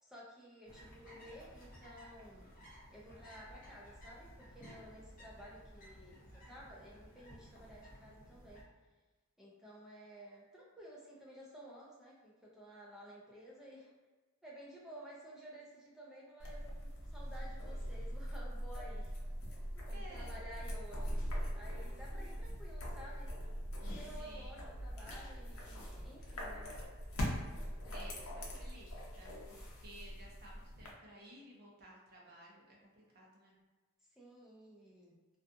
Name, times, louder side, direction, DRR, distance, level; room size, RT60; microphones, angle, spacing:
voice 1, 0.0-2.5 2.9-8.7 9.4-13.9 14.4-19.1 19.5-21.3 21.5-23.3 23.8-26.7 27.8-28.6 34.1-35.2, equal, ahead, -5 dB, 0.4 m, -54 dB
sound 1, 0.7-8.6, equal, 40° left, 0.7 m, -56 dB
sound 2, 16.4-30.9, equal, 80° left, 0.6 m, -42 dB
voice 2, 19.9-20.4 24.2-24.5 27.9-28.3 28.6-28.9 29.2-33.5, right 1 dB, 45° right, -4 dB, 0.6 m, -55 dB
2.4 x 2.3 x 2.6 m, 1.3 s
head